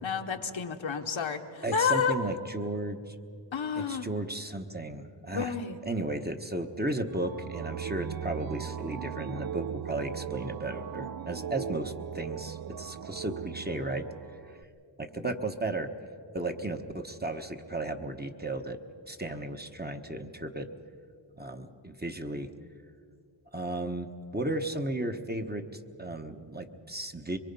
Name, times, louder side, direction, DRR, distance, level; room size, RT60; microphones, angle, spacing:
voice 1, 0.0-2.1 3.5-4.1 5.3-5.8, left 6 dB, 75° left, 5 dB, 1.2 m, -30 dB
voice 2, 1.6-3.2 3.8-5.5 5.8-14.1 15.0-15.9 16.3-18.8 19.1-20.7 21.4-22.5 23.5-27.4, right 2 dB, 20° right, 5 dB, 1.1 m, -34 dB
sound 1, 7.1-14.6, right 9 dB, 50° right, 0.5 m, -38 dB
24.5 x 23.0 x 5.4 m, 2.5 s
wide cardioid pair, 60°, 47 cm